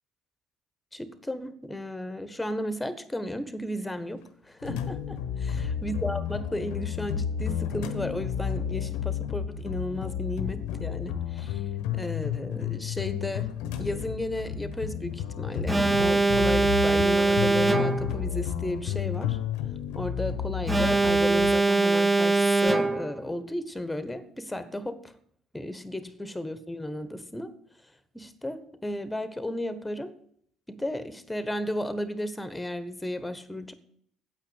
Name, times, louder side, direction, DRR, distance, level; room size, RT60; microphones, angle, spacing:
voice 1, 0.9-11.6 11.9-13.5 13.8-19.4 19.9-25.1 25.5-27.5 28.1-30.1 30.7-33.7, left 1 dB, 10° left, 13 dB, 1.4 m, -34 dB
sound 1, 4.6-21.5, left 8 dB, 65° left, 1.0 m, -32 dB
Alarm, 15.7-18.2 20.7-23.2, right 3 dB, 15° right, 1.0 m, -22 dB
9.0 x 8.4 x 8.2 m, 0.66 s
figure-of-eight pair, 55°, 0 cm